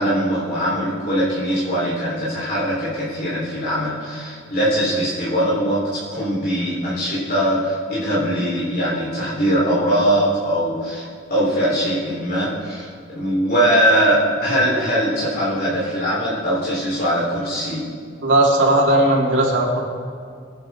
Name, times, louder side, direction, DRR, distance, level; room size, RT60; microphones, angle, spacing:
voice 1, 0.0-12.9 13.1-17.8, equal, 50° left, -8 dB, 3.9 m, -21 dB
voice 2, 18.2-19.8, right 1 dB, 65° right, -3 dB, 3.3 m, -16 dB
24.5 x 10.5 x 3.8 m, 2.2 s
head